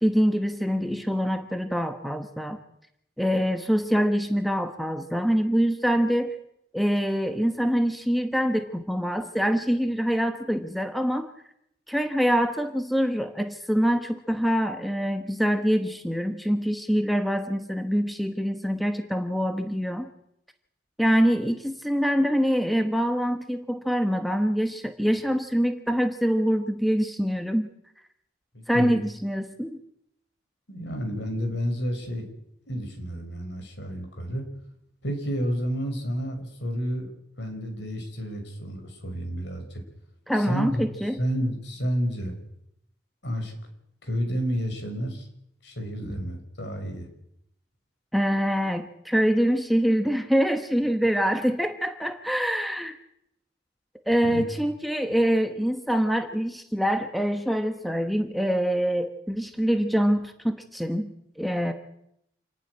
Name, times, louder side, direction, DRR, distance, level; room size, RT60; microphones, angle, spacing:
voice 1, 0.0-2.6 3.2-6.3 6.7-11.3 11.9-20.1 21.0-27.7 28.7-29.8 40.3-41.2 46.0-46.1 48.1-53.0 54.1-61.7, equal, ahead, 6 dB, 1.1 m, -25 dB
voice 2, 28.5-28.9 30.7-32.3 32.7-34.5 35.0-37.1 37.4-39.8 40.4-40.9 41.2-42.3 43.2-43.5 44.0-45.3 45.6-47.1 54.2-54.4, equal, 65° left, 5 dB, 5.2 m, -30 dB
27.5 x 12.0 x 9.9 m, 0.77 s
head